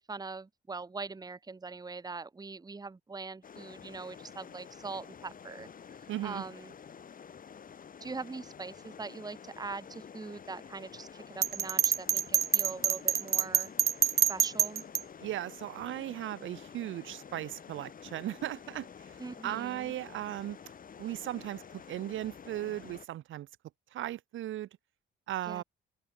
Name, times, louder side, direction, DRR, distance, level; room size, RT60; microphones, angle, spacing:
voice 1, 0.0-6.7 8.0-13.7 14.3-14.8 19.2-19.9 25.5-25.6, right 4 dB, 20° right, 1.2 m, -42 dB
sound 1, 3.4-23.1, left 7 dB, 45° left, 1.8 m, -50 dB
voice 2, 6.1-6.4 15.2-19.2 19.4-20.6 21.0-21.6 21.9-23.5 23.9-24.7 25.3-25.6, right 13 dB, 80° right, 2.6 m, -37 dB
Bell, 11.4-15.0, right 10 dB, 55° right, 0.9 m, -26 dB
open air
cardioid pair, 90°, 20 cm